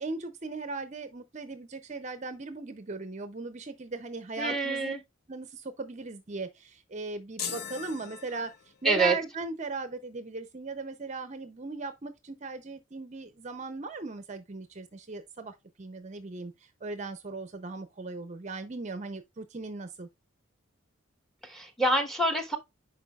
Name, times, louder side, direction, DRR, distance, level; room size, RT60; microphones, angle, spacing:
voice 1, 0.0-4.9 5.3-20.1, right 3 dB, 35° right, 0.5 m, -38 dB
voice 2, 4.4-5.0 8.8-9.2 21.4-22.6, right 2 dB, ahead, 1.1 m, -26 dB
sound 1, 7.4-8.9, left 7 dB, 50° left, 0.8 m, -39 dB
10.0 x 4.6 x 2.3 m
head